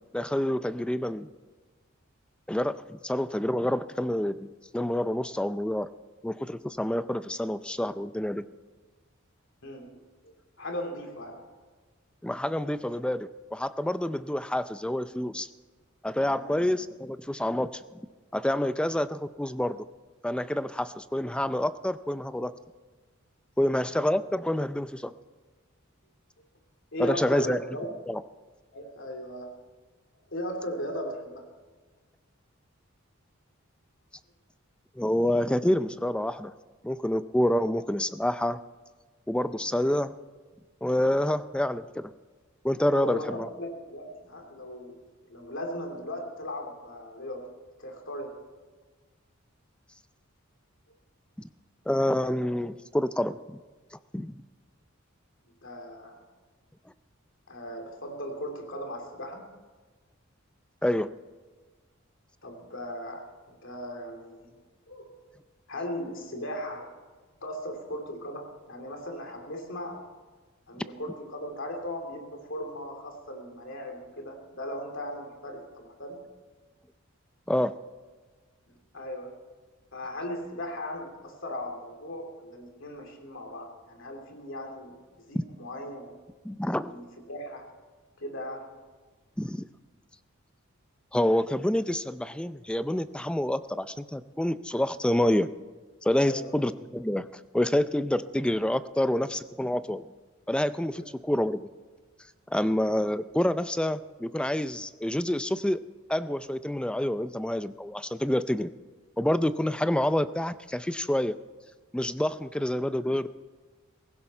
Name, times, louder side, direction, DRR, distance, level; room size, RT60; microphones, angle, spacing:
voice 1, 0.1-1.3 2.5-4.5 4.7-5.9 6.2-8.4 12.2-15.5 16.0-17.8 18.3-19.8 20.2-22.5 23.6-25.1 27.0-27.6 28.1-28.2 35.0-36.5 36.8-38.6 39.3-40.1 40.8-42.1 42.6-43.5 51.9-53.6 54.1-54.3 60.8-61.1 77.5-77.7 86.5-86.9 89.4-89.7 91.1-95.5 96.0-97.3 97.5-100.0 100.5-101.7 102.5-105.8 106.1-108.7 109.2-111.3 111.9-113.3, left 1 dB, 5° left, 13 dB, 0.4 m, -27 dB
voice 2, 9.6-11.4 16.3-16.6 23.6-23.7 26.9-27.9 28.7-29.5 30.3-31.4 42.9-47.5 47.8-48.4 55.6-56.3 57.5-59.5 62.4-64.5 64.9-65.1 65.7-66.9 67.4-70.0 70.7-76.2 78.7-79.4 79.9-86.1 86.9-87.7 88.2-88.7 96.2-96.6 100.9-101.0, equal, 65° left, 3 dB, 3.1 m, -38 dB
17.0 x 15.5 x 4.4 m, 1.4 s
head